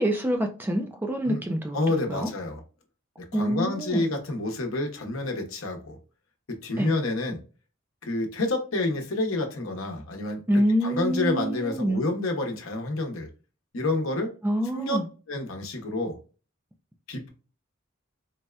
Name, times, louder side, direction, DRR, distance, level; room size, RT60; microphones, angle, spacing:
voice 1, 0.0-2.3 3.3-4.1 6.8-6.9 10.5-12.0 14.4-15.1, equal, 10° right, 0.3 m, -26 dB
voice 2, 1.7-2.6 3.3-6.0 6.5-7.4 8.0-13.3 13.7-14.3 14.7-15.0 15.3-16.2 17.1-17.3, left 2 dB, 75° left, 0.8 m, -29 dB
4.0 x 2.2 x 2.3 m
head